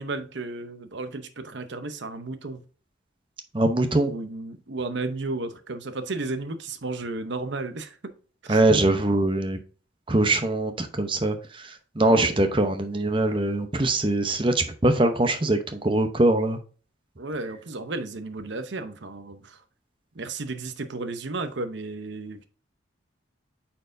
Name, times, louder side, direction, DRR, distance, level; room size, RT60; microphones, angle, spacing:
voice 1, 0.0-2.6 4.0-8.0 8.4-8.6 12.1-12.4 17.2-19.6 20.1-22.5, right 3 dB, 65° right, 0.8 m, -33 dB
voice 2, 3.5-4.1 8.5-9.6 10.1-11.4 12.0-16.6, right 2 dB, 25° right, 0.7 m, -22 dB
8.9 x 4.5 x 2.6 m
head